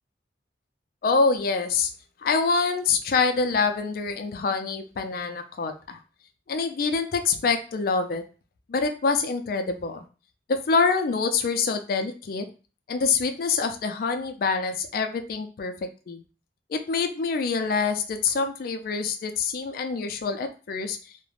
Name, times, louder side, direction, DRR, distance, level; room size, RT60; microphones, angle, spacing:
voice 1, 1.0-1.9 2.2-6.0 6.5-8.2 8.7-10.1 10.5-12.5 12.9-15.7 16.1-16.2 16.7-21.0, left 4 dB, 50° left, 7 dB, 0.3 m, -25 dB
2.3 x 2.1 x 3.1 m, 0.35 s
head